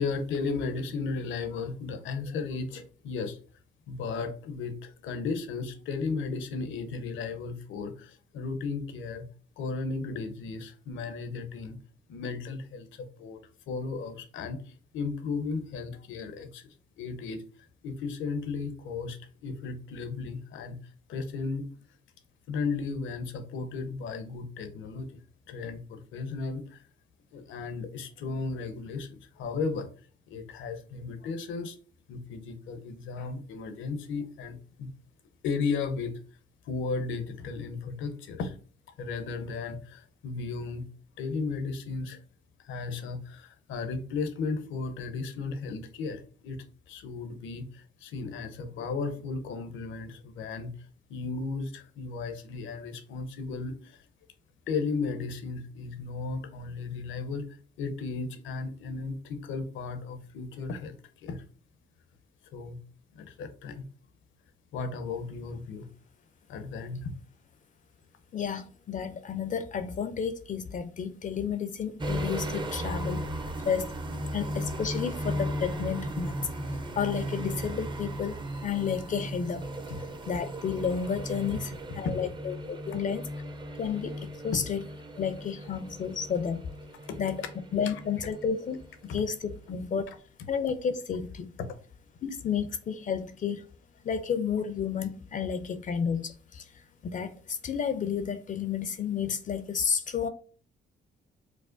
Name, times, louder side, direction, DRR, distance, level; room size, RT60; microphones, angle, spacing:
voice 1, 0.0-3.4 3.9-9.2 9.6-11.8 12.1-13.4 13.7-16.7 17.0-17.4 17.8-20.8 21.1-21.7 22.5-25.2 25.5-26.8 27.3-29.9 30.3-31.8 32.1-34.9 35.4-36.2 36.6-38.6 39.0-40.9 41.2-42.2 42.6-50.7 51.1-54.0 54.7-61.0 61.2-61.4 62.5-62.8 63.1-63.8 64.7-65.9 66.5-67.1 82.0-82.2 87.1-87.2 87.8-87.9, left 4 dB, 80° left, 0.6 m, -35 dB
voice 2, 68.3-73.2 73.6-73.9 74.3-76.5 77.0-79.7 80.3-83.3 83.8-84.8 85.2-86.6 87.2-87.4 87.7-90.2 90.5-91.5 92.2-93.6 94.0-96.6 97.0-100.3, left 7 dB, 40° left, 0.4 m, -31 dB
sound 1, 72.0-88.9 89.1-89.3, right 1 dB, 25° right, 0.5 m, -36 dB
4.7 x 2.2 x 2.4 m
cardioid pair, 90°, 20 cm